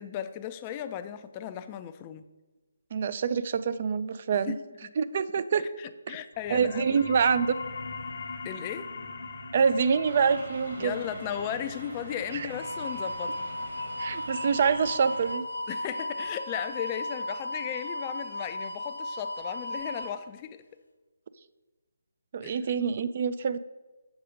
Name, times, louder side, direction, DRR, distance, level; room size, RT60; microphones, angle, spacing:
voice 1, 0.0-2.3 4.4-4.6 5.6-7.0 8.4-8.9 10.8-13.5 15.7-20.6 22.4-22.6, left 10 dB, 25° left, 10 dB, 0.4 m, -36 dB
voice 2, 2.9-4.6 5.0-5.6 6.1-6.2 6.5-7.5 9.5-10.9 12.3-12.5 14.0-15.5 22.3-23.6, right 6 dB, 40° right, 14 dB, 0.4 m, -26 dB
sound 1, 6.3-17.4, left 3 dB, 55° left, 1.0 m, -43 dB
sound 2, 10.0-15.3, right 2 dB, 60° right, 1.7 m, -44 dB
sound 3, 12.5-20.1, left 1 dB, 85° left, 1.1 m, -35 dB
7.1 x 5.0 x 4.9 m, 1.2 s
figure-of-eight pair, 150°, 0 cm